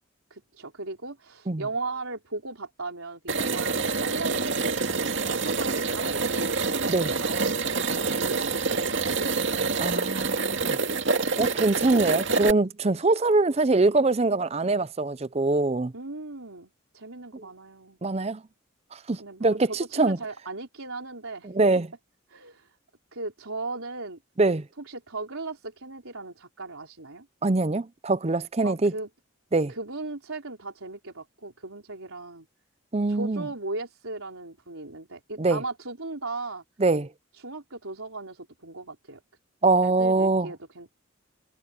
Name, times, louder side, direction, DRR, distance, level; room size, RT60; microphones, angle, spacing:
voice 1, 0.3-9.3 9.7-9.9 15.9-18.0 19.2-21.5 22.3-22.8 23.1-24.2 24.8-27.3 28.6-29.1 29.7-32.5 33.1-36.6 37.3-39.2 39.8-40.9, right 3 dB, 85° right, 4.1 m, -37 dB
sound 1, 3.3-12.5, right 4 dB, 60° right, 2.4 m, -27 dB
voice 2, 9.8-10.8 11.4-15.9 17.3-17.4 18.0-18.4 18.9-20.2 21.4-21.9 24.4-24.7 27.4-28.9 29.5-29.7 32.9-33.4 35.4-35.6 36.8-37.1 39.6-40.5, right 3 dB, 30° right, 0.6 m, -23 dB
head